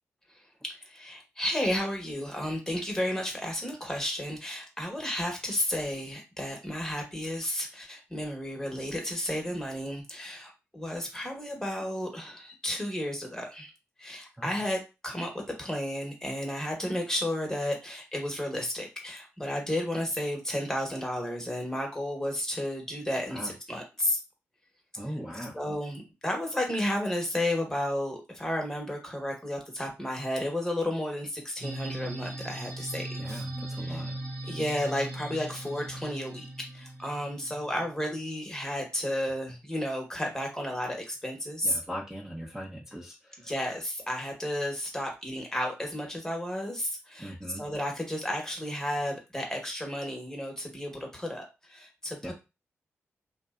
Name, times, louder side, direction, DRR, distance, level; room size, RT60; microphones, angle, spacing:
voice 1, 0.6-13.7 14.0-15.3 15.6-24.2 25.4-33.4 33.8-34.0 34.4-36.4 36.7-41.8 43.4-52.3, left 1 dB, 10° left, 0 dB, 1.2 m, -32 dB
voice 2, 25.0-25.6 33.2-34.2 41.6-43.5 47.2-47.6 52.2-52.3, equal, 10° right, -4 dB, 0.8 m, -40 dB
sound 1, 31.6-38.2, right 1 dB, 75° right, 0.9 m, -39 dB
2.6 x 2.2 x 2.4 m, 0.27 s
supercardioid pair, 45°, 6 cm